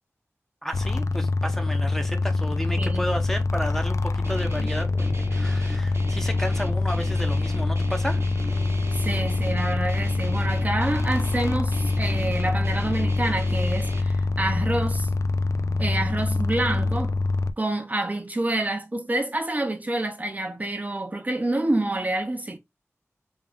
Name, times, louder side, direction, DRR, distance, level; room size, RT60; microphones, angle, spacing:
voice 1, 0.6-8.7, equal, 5° left, 0.7 m, -33 dB
sound 1, 0.7-17.5, left 3 dB, 75° left, 0.3 m, -25 dB
voice 2, 2.8-3.1 8.9-15.1 15.8-17.1 17.6-22.6, right 1 dB, 30° right, 0.6 m, -28 dB
Guitar, 4.2-14.0, right 2 dB, 55° right, 0.8 m, -38 dB
3.6 x 2.5 x 3.4 m
wide cardioid pair, 65°, 5 cm